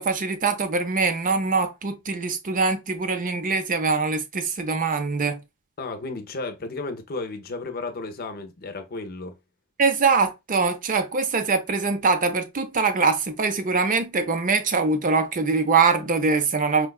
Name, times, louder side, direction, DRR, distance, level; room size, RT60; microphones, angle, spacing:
voice 1, 0.0-5.4 9.8-16.9, right 4 dB, 40° right, 0.6 m, -23 dB
voice 2, 5.8-9.4, left 3 dB, 45° left, 0.7 m, -33 dB
4.5 x 2.3 x 2.3 m
head